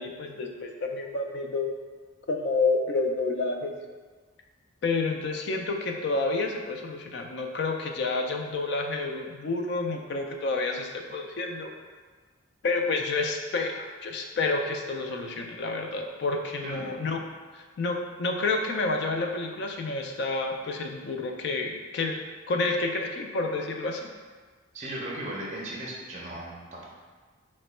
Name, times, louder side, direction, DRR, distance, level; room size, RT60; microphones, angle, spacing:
voice 1, 0.0-1.7 2.3-3.7 4.8-11.7 12.6-17.2 17.5-22.2 22.5-24.1, left 3 dB, 55° left, 2 dB, 0.3 m, -29 dB
voice 2, 24.7-26.9, right 1 dB, 35° right, -4 dB, 0.5 m, -37 dB
2.9 x 2.2 x 4.2 m, 1.4 s
head